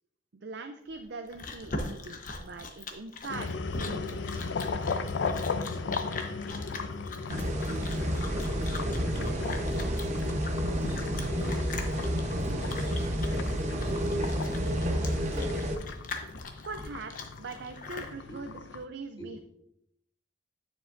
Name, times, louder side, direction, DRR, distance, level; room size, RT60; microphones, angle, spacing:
voice 1, 0.3-4.6 16.7-19.4, right 3 dB, 65° right, 6 dB, 0.5 m, -42 dB
Chewing mastication, 0.9-18.1, left 3 dB, 45° left, 1.0 m, -41 dB
sound 1, 3.3-18.9, left 4 dB, 70° left, 0.5 m, -37 dB
voice 2, 6.3-6.6 7.6-16.7 18.2-18.5 19.2-19.4, equal, 25° left, -3 dB, 2.1 m, -44 dB
sound 2, 7.3-15.8, equal, 40° right, 0.9 m, -30 dB
9.4 x 7.2 x 2.6 m, 0.77 s
head